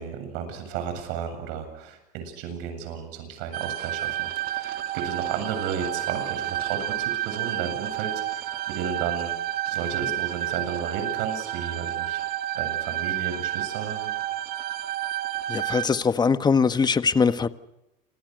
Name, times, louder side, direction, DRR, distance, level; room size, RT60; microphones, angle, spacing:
voice 1, 0.0-9.3 9.7-12.2 12.5-14.1, right 7 dB, 75° right, 8 dB, 7.9 m, -33 dB
sound 1, 3.5-15.9, right 13 dB, 50° right, 1.9 m, -30 dB
voice 2, 15.5-17.5, left 5 dB, 20° left, 11 dB, 1.5 m, -21 dB
29.5 x 26.0 x 6.6 m, 0.89 s
supercardioid pair, 115°, 19 cm